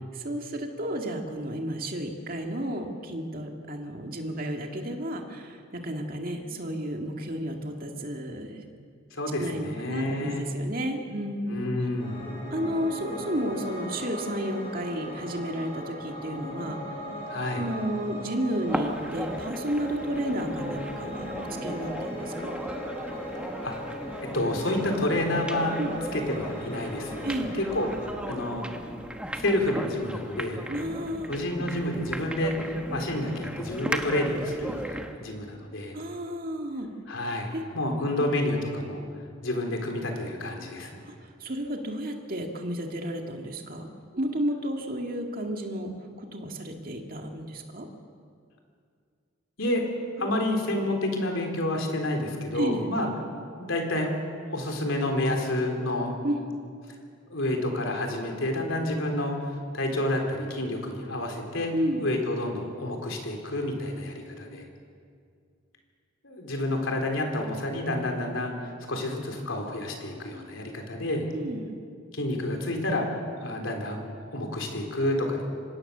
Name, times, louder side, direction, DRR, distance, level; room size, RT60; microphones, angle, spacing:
voice 1, 0.1-8.6 9.4-11.6 12.5-16.8 17.5-22.5 25.8-25.9 27.2-27.5 30.7-31.3 35.9-36.9 37.5-37.6 41.2-43.9 44.1-47.9 52.5-52.9 56.2-56.4 61.7-62.0 71.3-71.6, equal, 45° right, 2 dB, 2.1 m, -32 dB
voice 2, 9.1-10.5 11.5-12.3 17.3-17.6 23.6-23.7 24.3-25.8 26.1-27.3 27.6-27.9 28.3-28.6 29.3-30.8 31.3-36.0 37.1-39.0 39.4-41.0 49.6-49.8 50.2-53.1 53.6-54.1 54.5-56.1 57.3-61.7 62.0-64.7 66.2-68.5 68.9-71.3 72.1-74.0 74.3-75.4, left 1 dB, 75° left, 2 dB, 3.7 m, -29 dB
Piano, 12.0-28.1, equal, 30° left, 6.2 m, -38 dB
sound 1, 18.7-35.2, right 1 dB, 5° right, 1.1 m, -36 dB
25.0 x 17.5 x 6.8 m, 2.2 s
head